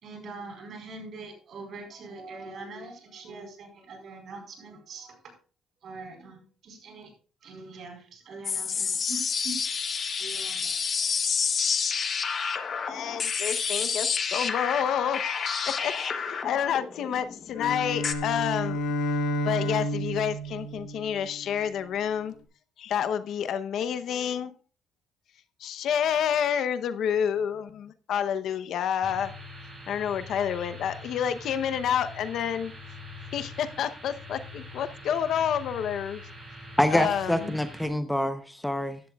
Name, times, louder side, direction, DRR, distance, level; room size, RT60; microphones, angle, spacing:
voice 1, 0.0-5.3 5.8-7.1 7.4-9.8 10.2-11.1, right 3 dB, 55° right, 4.5 m, -43 dB
sound 1, 8.4-18.1, left 6 dB, 40° left, 1.1 m, -29 dB
voice 2, 12.8-15.4 15.6-15.9 16.3-18.8 19.5-22.3 22.8-24.5 25.6-29.3 29.9-32.7 33.3-36.2 36.9-37.6, left 8 dB, 65° left, 0.8 m, -29 dB
Bowed string instrument, 17.5-21.7, equal, 80° left, 1.8 m, -31 dB
sound 2, 29.0-37.9, left 2 dB, 20° right, 4.6 m, -44 dB
voice 3, 36.8-39.0, left 1 dB, 5° left, 0.8 m, -26 dB
15.0 x 11.5 x 2.4 m
cardioid pair, 110°, 0 cm